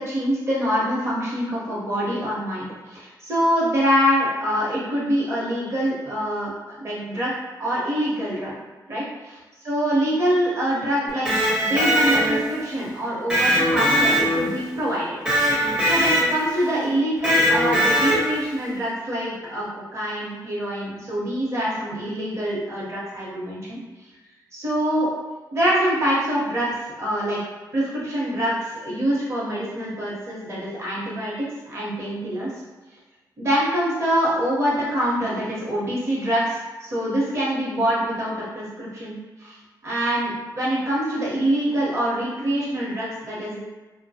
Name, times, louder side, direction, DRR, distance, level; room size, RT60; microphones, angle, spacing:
voice 1, 0.0-7.3 7.6-8.6 8.9-9.4 9.6-15.2 15.8-19.7 19.9-23.8 24.5-25.1 25.5-26.7 27.0-27.4 27.7-32.5 33.4-39.5 39.8-43.6, equal, 35° right, -6 dB, 0.8 m, -25 dB
Electric guitar, 11.1-12.6 13.3-14.7 15.2-16.5 17.2-18.5, equal, 10° right, 0.6 m, -20 dB
2.6 x 2.1 x 2.7 m, 1.2 s
wide cardioid pair, 175°, 8 cm